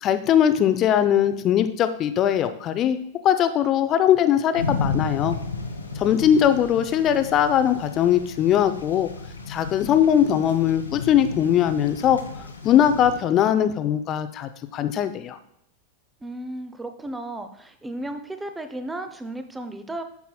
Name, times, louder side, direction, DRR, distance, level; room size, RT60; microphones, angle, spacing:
voice 1, 0.0-3.0 3.2-5.4 6.0-9.1 9.5-12.2 12.6-15.4, left 10 dB, 35° left, 11 dB, 0.5 m, -20 dB
sound 1, 4.5-13.2, left 4 dB, 80° left, 0.9 m, -33 dB
voice 2, 16.2-20.0, right 1 dB, 10° right, 8 dB, 0.6 m, -34 dB
9.2 x 6.9 x 2.3 m, 0.76 s
figure-of-eight pair, 90°, 0 cm